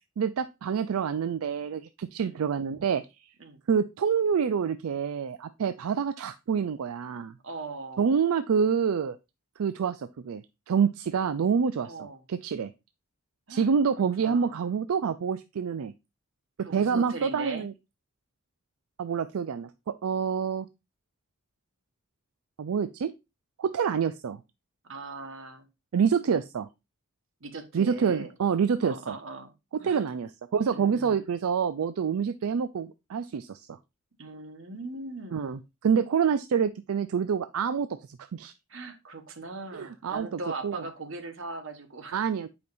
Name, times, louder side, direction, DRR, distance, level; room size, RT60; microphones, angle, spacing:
voice 1, 0.2-3.3 3.7-7.3 8.0-9.2 9.6-11.9 12.3-12.7 13.5-15.9 16.6-17.7 19.0-20.7 22.6-23.1 23.6-24.4 25.9-26.7 27.7-29.2 29.8-33.8 35.3-38.5 39.7-40.8 42.1-42.5, right 6 dB, 85° right, 11 dB, 0.4 m, -27 dB
voice 2, 7.4-8.2 11.8-12.2 13.5-13.7 14.2-14.7 16.6-17.7 24.8-25.7 27.4-28.3 28.8-29.5 29.8-30.1 30.7-31.3 34.2-35.6 38.7-42.1, right 3 dB, 65° right, 7 dB, 1.2 m, -40 dB
9.4 x 5.1 x 2.6 m, 0.25 s
head